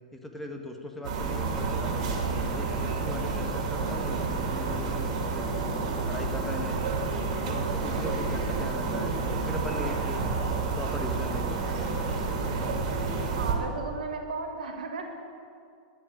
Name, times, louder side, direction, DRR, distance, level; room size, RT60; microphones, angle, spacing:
voice 1, 0.1-2.1 2.5-5.4 6.1-6.8 7.4-10.2 10.7-12.1, left 1 dB, 5° left, 2 dB, 1.6 m, -39 dB
sound 1, 1.0-13.5, right 4 dB, 60° right, 2.6 m, -29 dB
voice 2, 13.4-15.1, right 4 dB, 80° right, 3 dB, 1.8 m, -35 dB
11.5 x 8.0 x 9.0 m, 2.3 s
hypercardioid pair, 105°, 4 cm